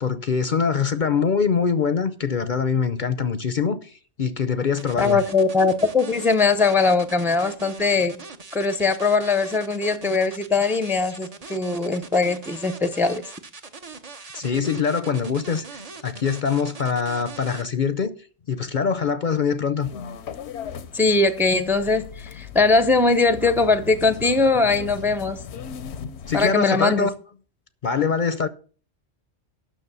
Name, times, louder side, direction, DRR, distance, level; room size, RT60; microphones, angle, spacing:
voice 1, 0.0-5.2 14.3-15.7 16.0-18.1 18.5-19.9 26.2-27.1 27.8-28.5, left 6 dB, 50° left, 0.7 m, -23 dB
sound 1, 4.8-17.6, right 4 dB, 35° right, 1.0 m, -41 dB
voice 2, 5.0-8.2 8.5-13.2 20.9-25.4 26.3-27.1, left 3 dB, ahead, 0.6 m, -21 dB
sound 2, 19.8-26.5, left 7 dB, 80° left, 1.1 m, -37 dB
9.4 x 6.3 x 6.8 m
omnidirectional pair, 1.1 m